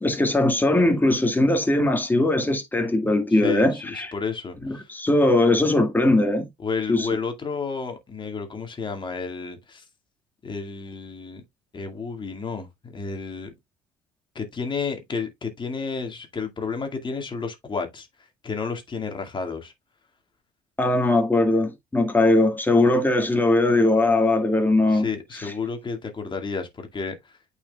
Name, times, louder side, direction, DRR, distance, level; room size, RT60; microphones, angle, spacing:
voice 1, 0.0-4.1 4.6-6.5 6.9-7.1 20.8-25.1 25.4-25.5, left 2 dB, 10° left, 2.1 m, -20 dB
voice 2, 3.3-4.9 6.6-9.8 10.4-11.4 11.7-13.5 14.4-18.1 18.4-19.7 24.9-27.3, left 5 dB, 30° left, 2.1 m, -31 dB
8.7 x 5.0 x 2.4 m
supercardioid pair, 80°, 16 cm